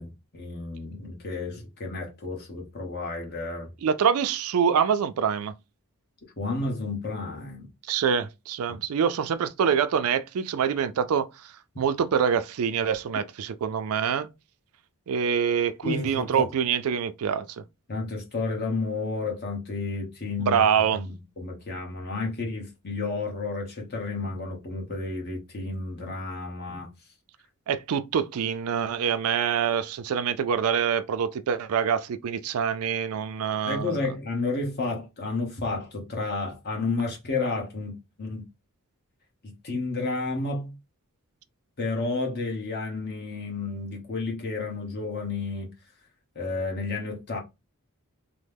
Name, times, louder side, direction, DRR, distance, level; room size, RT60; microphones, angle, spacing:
voice 1, 0.0-3.7 6.4-7.7 8.7-8.8 15.8-16.5 17.9-26.9 33.7-38.4 39.4-40.7 41.8-45.7 46.3-47.4, left 3 dB, 45° left, 1.0 m, -31 dB
voice 2, 3.8-5.5 7.9-14.3 15.1-17.4 20.4-21.0 27.7-34.0, right 7 dB, 70° right, 0.4 m, -25 dB
3.1 x 2.0 x 3.3 m
head